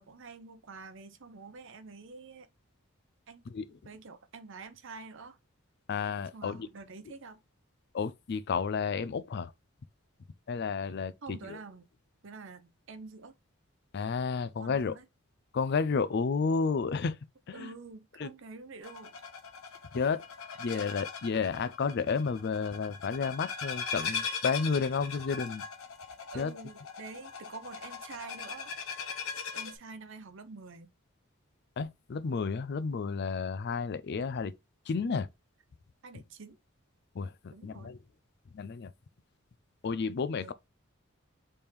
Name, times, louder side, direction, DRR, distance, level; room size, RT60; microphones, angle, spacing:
voice 1, 0.0-2.5 3.3-3.4 3.8-5.4 6.3-7.4 11.2-11.9 12.2-13.3 14.6-15.1 17.5-19.1 20.7-20.8 26.3-28.7 29.5-30.9 36.0-36.6 37.5-37.9 40.4-40.5, right 4 dB, 60° right, 0.7 m, -47 dB
voice 2, 5.9-6.7 7.9-9.5 10.5-11.6 13.9-15.0 15.5-17.2 17.5-17.7 18.2-18.3 19.9-20.2 20.6-25.6 26.3-26.5 31.8-34.6 34.9-35.3 37.1-38.0 38.5-38.9 39.8-40.5, left 5 dB, 50° left, 0.4 m, -31 dB
sound 1, 18.8-29.7, left 5 dB, 90° left, 0.9 m, -40 dB
3.5 x 3.3 x 4.2 m
head